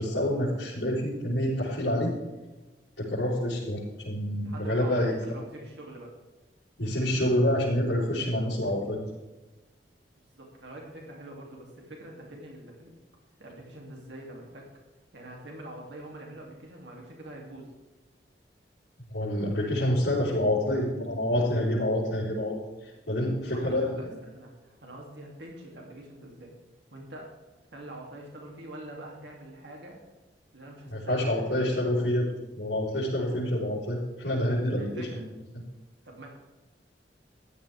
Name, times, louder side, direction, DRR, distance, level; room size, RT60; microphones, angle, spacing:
voice 1, 0.0-2.1 3.0-5.1 6.8-9.0 19.1-22.5 22.8-24.1 30.9-32.3 32.6-35.1, left 1 dB, 75° left, -8 dB, 4.3 m, -27 dB
voice 2, 4.4-6.1 10.3-13.0 13.4-14.7 15.1-17.7 23.4-26.5 26.9-27.3 27.7-30.0 30.5-31.7 34.7-35.2 36.0-36.3, right 1 dB, 80° right, -1 dB, 2.9 m, -44 dB
15.0 x 11.5 x 3.6 m, 1.1 s
head